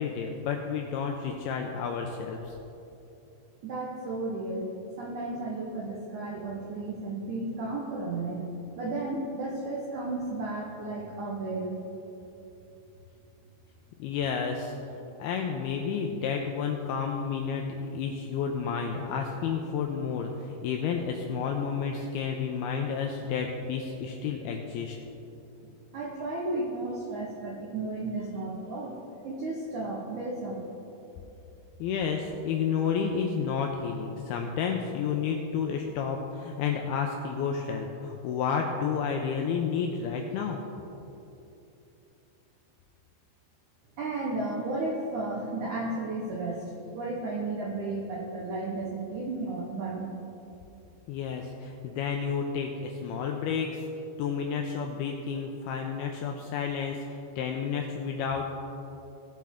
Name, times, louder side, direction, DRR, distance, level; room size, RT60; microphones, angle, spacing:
voice 1, 0.0-2.6 14.0-14.8 15.2-17.7 17.9-25.0 31.8-40.6 51.1-53.8 54.2-58.4, left 6 dB, 90° left, 2 dB, 2.2 m, -31 dB
voice 2, 3.6-4.7 5.0-8.4 8.7-11.7 25.9-28.9 29.2-30.6 44.0-46.6 46.9-50.1, right 2 dB, 80° right, -3 dB, 1.7 m, -33 dB
18.0 x 7.5 x 3.6 m, 2.9 s
omnidirectional pair, 5.1 m